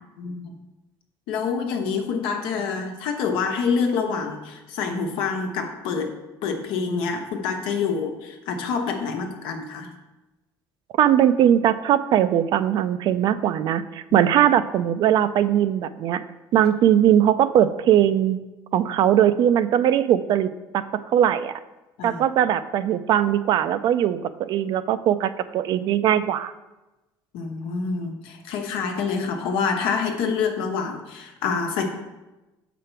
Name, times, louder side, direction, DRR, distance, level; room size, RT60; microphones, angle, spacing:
voice 1, 0.2-0.5 1.3-6.1 6.4-9.9 14.1-14.3 22.0-22.2 27.3-31.8, left 5 dB, 85° left, 3 dB, 1.1 m, -27 dB
voice 2, 11.0-16.2 16.5-18.4 18.7-20.9 21.1-21.6 22.0-26.5, right 10 dB, 60° right, 13 dB, 0.4 m, -20 dB
6.9 x 5.1 x 4.4 m, 1.1 s
cardioid pair, 130°, 8 cm